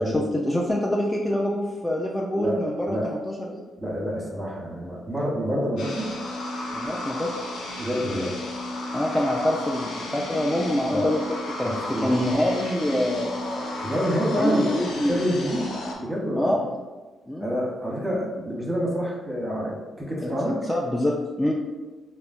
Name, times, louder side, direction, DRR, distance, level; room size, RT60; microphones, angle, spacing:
voice 1, 0.0-3.6 6.7-7.3 8.9-11.2 11.6-11.7 12.0-13.8 14.3-15.2 16.4-16.6 17.3-17.5 20.2-21.5, left 1 dB, 15° left, -2 dB, 0.4 m, -25 dB
voice 2, 2.4-3.1 3.8-6.1 7.8-8.3 10.9-11.1 11.6-12.2 13.8-14.8 15.1-16.5 17.4-20.6, equal, 15° right, -3 dB, 1.0 m, -27 dB
sound 1, 5.8-16.0, left 1 dB, 80° left, 0.4 m, -33 dB
3.0 x 2.1 x 2.5 m, 1.2 s
supercardioid pair, 50°, 0 cm